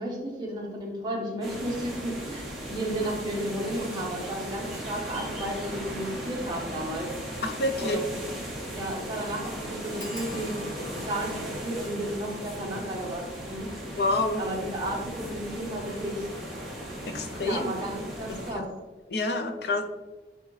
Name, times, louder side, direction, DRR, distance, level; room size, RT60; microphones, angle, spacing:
voice 1, 0.0-7.1 7.8-8.2 8.7-14.0 14.4-16.3 17.3-18.6, right 1 dB, 25° right, -2 dB, 1.4 m, -33 dB
sound 1, 1.4-18.5, right 1 dB, ahead, 1.6 m, -37 dB
voice 2, 7.4-8.0 13.9-14.5 17.1-17.7 18.3-18.7 19.1-19.8, left 2 dB, 70° left, 5 dB, 0.6 m, -28 dB
sound 2, 10.0-15.3 15.9-16.5 16.8-17.1 17.4-17.5, left 2 dB, 25° left, 1.0 m, -50 dB
9.2 x 3.5 x 3.3 m, 1.2 s
head